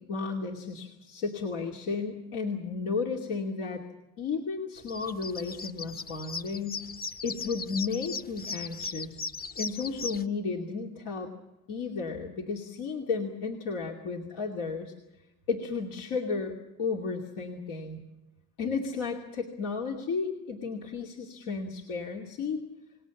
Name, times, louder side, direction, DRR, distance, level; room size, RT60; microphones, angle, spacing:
voice 1, 0.0-3.8 4.2-6.8 7.2-9.2 9.6-11.3 11.7-14.9 15.5-18.0 18.6-22.6, left 4 dB, 85° left, 0 dB, 2.7 m, -33 dB
sound 1, 4.8-10.2, left 4 dB, 25° left, 0.7 m, -38 dB
28.5 x 19.5 x 7.2 m, 0.97 s
supercardioid pair, 85°, 41 cm